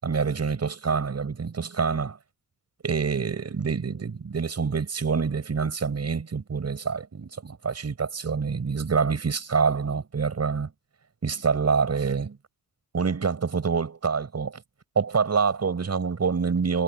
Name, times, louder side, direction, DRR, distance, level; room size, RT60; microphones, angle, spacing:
voice 1, 0.0-2.2 2.8-10.7 11.2-12.4 12.9-14.6 15.0-16.8, right 5 dB, 50° right, 7.6 m, -26 dB
cardioid pair, 90°, 33 cm